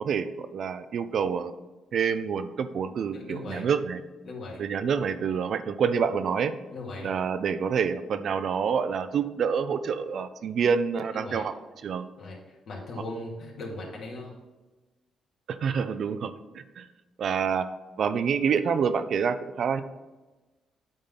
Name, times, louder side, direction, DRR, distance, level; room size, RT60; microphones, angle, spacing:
voice 1, 0.0-1.5 1.9-4.0 4.6-6.5 7.0-11.5 11.8-12.1 15.5-16.9 17.2-17.7 18.0-19.8, right 6 dB, 60° right, 11 dB, 0.5 m, -27 dB
voice 2, 3.1-3.7 4.2-4.6 6.7-7.1 11.1-11.4 12.2-14.4, left 2 dB, 65° left, -2 dB, 2.3 m, -38 dB
8.9 x 3.8 x 5.8 m, 1.2 s
cardioid pair, 90°, 0 cm